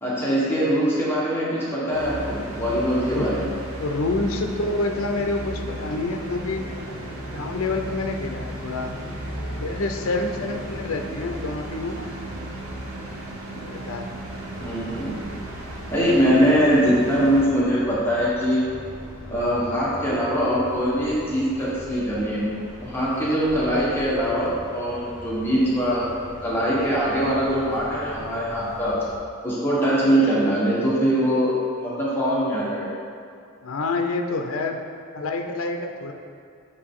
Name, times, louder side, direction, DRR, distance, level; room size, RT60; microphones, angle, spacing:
voice 1, 0.0-3.5 14.6-15.2 15.9-18.6 19.3-22.4 22.8-26.0 26.4-29.0 29.4-31.5 31.8-32.9, equal, 10° left, -8 dB, 1.3 m, -22 dB
sound 1, 1.9-17.5, right 1 dB, 90° right, 1.1 m, -35 dB
voice 2, 3.8-6.6 7.3-8.9 9.6-12.1 13.5-14.1 33.6-34.8 35.1-36.1, left 3 dB, 70° left, 4 dB, 0.6 m, -27 dB
sound 2, 4.7-13.1, left 1 dB, 40° left, 1.3 m, -42 dB
sound 3, 14.3-29.1, equal, 10° right, 1.1 m, -42 dB
6.8 x 6.5 x 3.7 m, 2.3 s
head